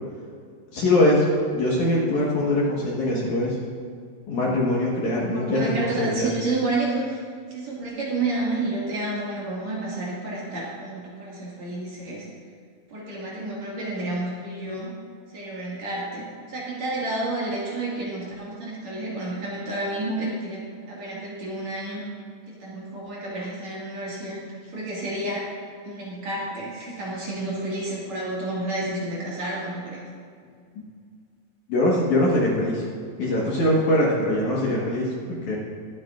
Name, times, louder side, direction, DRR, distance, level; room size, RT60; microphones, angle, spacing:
voice 1, 0.7-1.3 1.5-3.6 4.3-6.3 31.7-32.8 33.2-35.6, left 1 dB, 60° left, -5 dB, 2.4 m, -22 dB
voice 2, 5.2-7.2 7.5-12.3 12.9-14.9 15.3-22.0 22.5-25.5 25.8-30.0, right 2 dB, 50° right, -6 dB, 2.8 m, -30 dB
22.5 x 9.2 x 2.5 m, 2.1 s
omnidirectional pair, 4.6 m